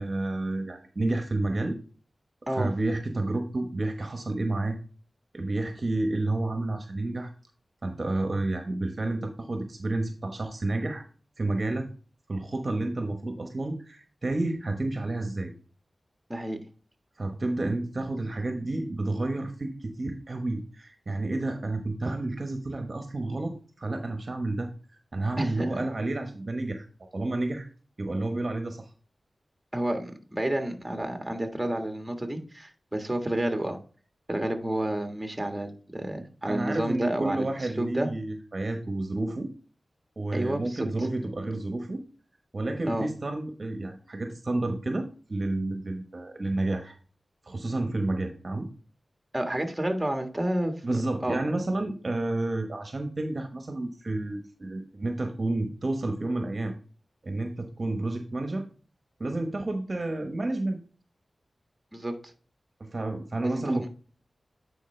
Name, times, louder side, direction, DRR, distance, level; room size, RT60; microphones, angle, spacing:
voice 1, 0.0-1.8 2.5-4.8 5.3-7.3 7.8-11.0 11.4-11.9 12.3-15.5 17.2-24.7 25.1-26.8 27.1-27.7 28.0-28.9 36.5-39.5 40.2-42.0 42.5-46.9 47.4-48.7 50.8-56.7 57.2-58.6 59.2-60.8 62.8-63.9, right 2 dB, 50° right, 5 dB, 1.1 m, -30 dB
voice 2, 25.4-25.7 29.7-33.8 34.3-37.5 37.8-38.1 40.3-40.9 42.9-43.1 49.3-51.4 61.9-62.1 63.4-63.9, right 1 dB, 15° right, 5 dB, 1.5 m, -30 dB
9.3 x 4.6 x 3.2 m, 0.39 s
wide cardioid pair, 65°, 0 cm